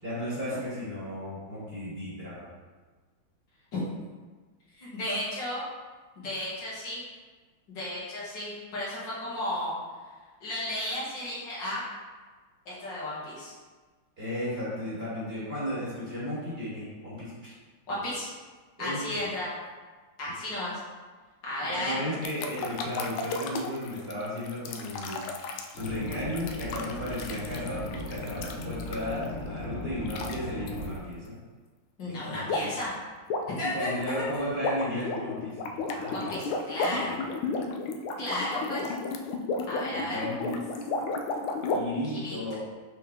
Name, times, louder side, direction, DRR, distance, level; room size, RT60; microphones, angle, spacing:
voice 1, 0.0-2.5 14.2-17.6 18.8-19.2 21.7-25.2 25.7-31.3 32.1-32.7 33.6-36.5 36.9-37.5 39.9-40.6 41.7-42.5, left 1 dB, 30° right, -9 dB, 2.1 m, -34 dB
voice 2, 4.8-5.6 6.2-7.0 7.7-9.7 10.4-11.8 12.7-13.5 17.9-18.3 18.8-19.5 20.2-20.7 21.4-22.0 32.0-32.9 33.6-33.9 36.1-37.1 38.2-38.9 39.7-40.2 42.0-42.5, left 1 dB, 65° left, -8 dB, 2.3 m, -33 dB
sound 1, 22.2-29.3 30.1-30.4 30.7-30.9 32.5-32.8 33.1-41.8, left 3 dB, 85° left, 1.5 m, -33 dB
sound 2, 25.7-31.0, left 1 dB, 35° left, 1.4 m, -38 dB
6.6 x 4.4 x 3.4 m, 1.4 s
omnidirectional pair, 2.2 m